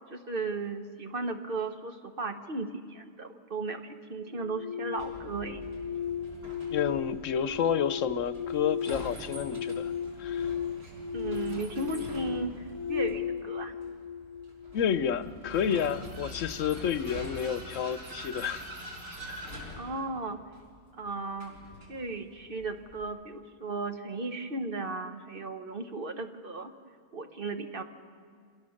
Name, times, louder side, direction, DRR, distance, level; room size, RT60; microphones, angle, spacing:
voice 1, 0.1-5.6 11.1-13.7 19.8-20.4 21.0-21.6 21.9-26.7 27.1-27.8, right 3 dB, 45° right, 6 dB, 1.2 m, -35 dB
sound 1, 4.3-15.3, left 8 dB, 40° left, 0.7 m, -36 dB
Vehicle, 5.0-23.0, left 1 dB, 85° right, 4.9 m, -45 dB
voice 2, 6.7-9.9 10.2-10.5 14.7-18.7 19.2-19.4, left 8 dB, 80° left, 13 dB, 1.1 m, -30 dB
26.0 x 18.0 x 6.5 m, 2.1 s
omnidirectional pair, 1.3 m